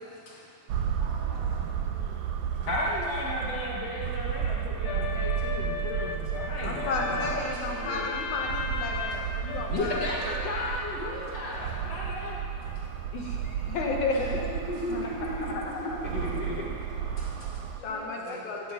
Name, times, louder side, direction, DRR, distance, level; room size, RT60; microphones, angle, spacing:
sound 1, 0.7-17.8, right 8 dB, 80° right, 2.3 m, -33 dB
voice 1, 1.0-2.2 15.0-15.7 17.8-18.4, equal, 25° right, -7 dB, 5.5 m, -48 dB
voice 2, 2.6-8.1 9.1-9.2 9.7-12.4 12.8-12.9 14.1-17.7 18.3-18.4, left 1 dB, 55° left, -4 dB, 2.9 m, -35 dB
sound 2, 4.9-11.2, left 7 dB, 90° left, 2.3 m, -36 dB
voice 3, 6.6-10.0 13.1-14.5 14.9-15.6 17.8-18.7, left 3 dB, 70° left, -1 dB, 2.8 m, -33 dB
17.0 x 15.5 x 5.2 m, 2.4 s
omnidirectional pair, 3.6 m